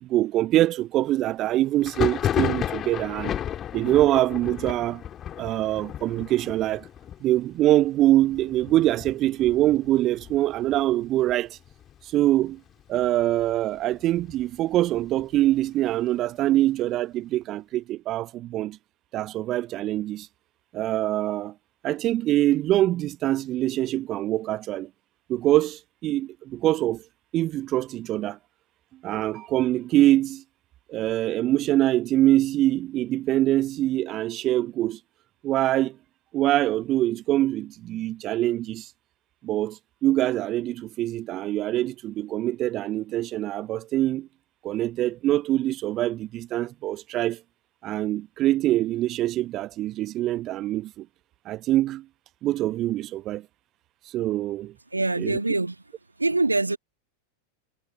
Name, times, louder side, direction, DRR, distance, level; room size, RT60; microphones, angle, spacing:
voice 1, 0.0-3.3 3.7-5.0 5.4-6.9 7.2-11.6 12.0-12.6 12.9-18.8 19.1-20.3 20.7-21.5 21.8-24.9 25.3-27.0 27.3-28.4 29.0-30.4 30.9-35.0 35.4-36.0 36.3-38.9 39.4-44.3 44.6-47.4 47.8-51.1 51.4-52.0 52.4-53.4 54.1-54.7 55.2-55.4, right 14 dB, 35° right, 0.8 m, -24 dB
Thunder, 1.8-11.3 11.6-12.3 12.5-13.5 13.9-15.6, left 10 dB, 25° left, 3.6 m, -33 dB
voice 2, 54.9-55.8 56.2-56.8, right 2 dB, 80° right, 1.5 m, -24 dB
figure-of-eight pair, 90°, 0 cm